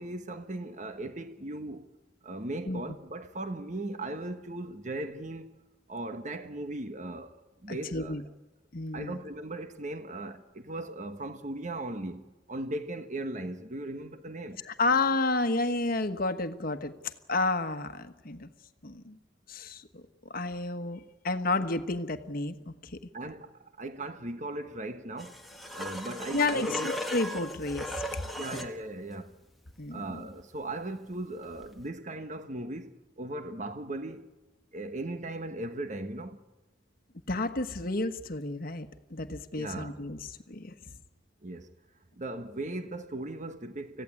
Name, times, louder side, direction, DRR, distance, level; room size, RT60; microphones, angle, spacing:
voice 1, 0.0-1.9 2.2-5.5 5.9-7.4 7.6-8.2 8.9-14.6 23.1-25.4 25.7-26.9 28.4-29.3 29.9-34.3 34.7-36.4 39.5-40.0 41.4-41.7 42.1-44.0, right 2 dB, 40° right, 1.3 m, -38 dB
voice 2, 7.7-8.2 8.7-9.2 14.6-18.5 18.8-19.2 19.5-20.0 20.3-23.0 26.3-28.2 29.8-30.2 37.3-40.9, left 2 dB, 50° left, 1.3 m, -31 dB
sound 1, 25.2-28.8 31.7-31.8, left 1 dB, ahead, 1.7 m, -37 dB
25.5 x 16.0 x 8.5 m
head